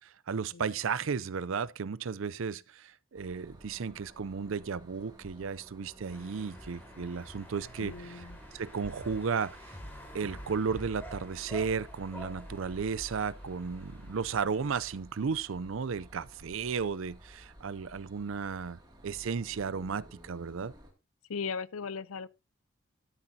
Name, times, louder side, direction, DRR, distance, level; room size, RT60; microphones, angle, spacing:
voice 1, 0.0-7.9 8.5-9.6 10.1-20.7, right 5 dB, 70° right, 0.5 m, -34 dB
sound 1, 3.1-20.9, equal, 20° right, 2.3 m, -53 dB
sound 2, 6.1-15.0, equal, 10° left, 4.1 m, -48 dB
voice 2, 7.8-8.4 21.3-22.3, left 5 dB, 85° left, 0.6 m, -37 dB
13.0 x 10.0 x 2.8 m
head